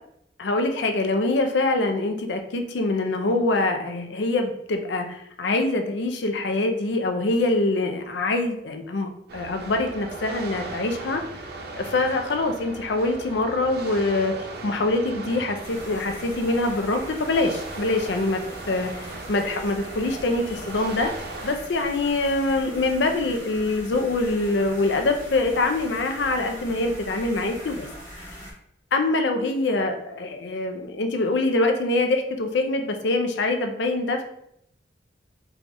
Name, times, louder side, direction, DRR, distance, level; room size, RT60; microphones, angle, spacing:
voice 1, 0.4-11.2 11.8-14.3 14.6-18.4 18.7-21.1 21.4-27.9 28.2-28.3 28.9-34.2, left 2 dB, 75° left, 5 dB, 0.5 m, -24 dB
sound 1, 9.3-21.6, right 2 dB, 60° right, 0.6 m, -38 dB
sound 2, 15.6-28.5, equal, 15° left, 1.1 m, -41 dB
4.6 x 2.4 x 2.6 m, 0.75 s
head